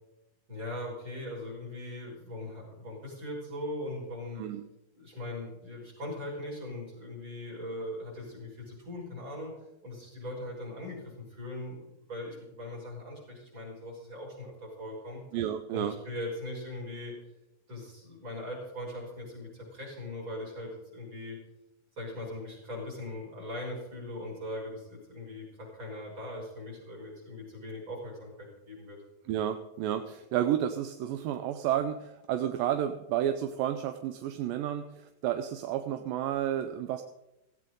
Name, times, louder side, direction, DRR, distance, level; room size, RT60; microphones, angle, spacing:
voice 1, 0.5-4.4 4.9-9.5 9.8-15.2 15.7-17.1 17.7-21.4 22.0-29.0, left 1 dB, 30° right, -4 dB, 6.7 m, -40 dB
voice 2, 15.3-16.0 29.3-37.0, right 11 dB, 80° right, 8 dB, 2.4 m, -31 dB
17.0 x 16.0 x 3.8 m, 0.90 s
omnidirectional pair, 4.1 m